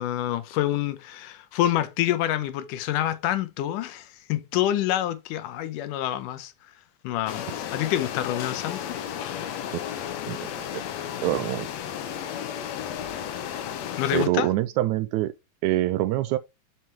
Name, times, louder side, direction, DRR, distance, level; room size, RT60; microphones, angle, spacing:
voice 1, 0.0-6.5 7.0-9.0 14.0-14.5, left 12 dB, 90° left, 2.4 m, -27 dB
sound 1, 7.3-14.3, left 9 dB, 65° left, 1.9 m, -33 dB
voice 2, 11.2-11.7 14.1-15.3 15.6-16.4, right 15 dB, 80° right, 1.8 m, -25 dB
7.5 x 5.8 x 3.4 m
omnidirectional pair, 3.7 m